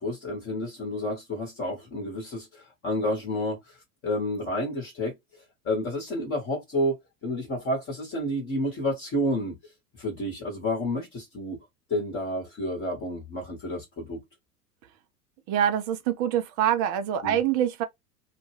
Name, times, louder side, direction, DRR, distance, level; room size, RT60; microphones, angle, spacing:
voice 1, 0.0-5.1 5.6-7.0 7.2-11.6 11.9-14.2 17.2-17.4, left 1 dB, 25° left, 1.1 m, -30 dB
voice 2, 15.5-17.8, right 10 dB, 30° right, 0.5 m, -25 dB
2.3 x 2.2 x 3.2 m
figure-of-eight pair, 90°, 49 cm